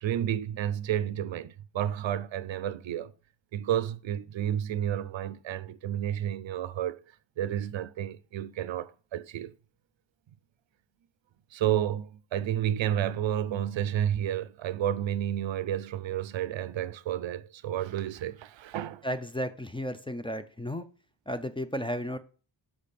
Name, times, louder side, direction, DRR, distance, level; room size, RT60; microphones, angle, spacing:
voice 1, 0.0-3.1 3.5-7.0 7.4-9.5 11.5-19.1, right 11 dB, 80° right, 0.5 m, -31 dB
voice 2, 19.0-20.9 21.3-22.2, equal, 10° left, 0.4 m, -33 dB
6.1 x 5.0 x 4.2 m
wide cardioid pair, 105°, 44 cm